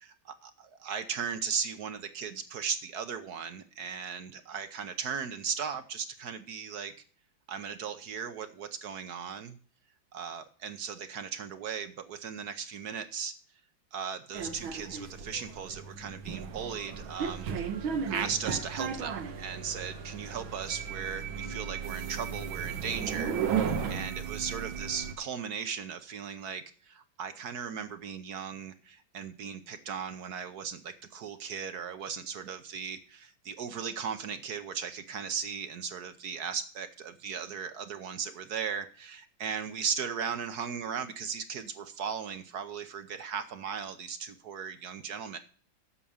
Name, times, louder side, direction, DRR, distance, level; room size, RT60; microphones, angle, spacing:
voice 1, 0.0-6.9 7.5-9.6 10.1-13.3 13.9-17.6 18.0-45.4, right 6 dB, 60° right, 10 dB, 1.2 m, -37 dB
sound 1, 14.3-25.1, right 7 dB, 80° right, 1.9 m, -35 dB
8.6 x 6.7 x 7.1 m, 0.43 s
omnidirectional pair, 2.2 m